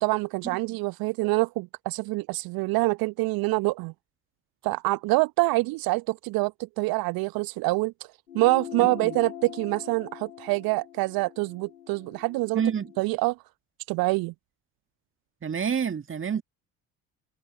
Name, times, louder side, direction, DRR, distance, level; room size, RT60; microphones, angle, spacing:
voice 1, 0.0-3.9 4.6-6.5 6.8-8.1 8.3-12.6 13.0-13.4 13.9-14.3, right 22 dB, 50° right, 1.0 m, -26 dB
sound 1, 8.3-13.1, left 10 dB, 80° left, 1.8 m, -42 dB
voice 2, 8.8-9.1 12.5-12.9 15.4-16.4, right 7 dB, 25° right, 2.0 m, -28 dB
figure-of-eight pair, 55°, 44 cm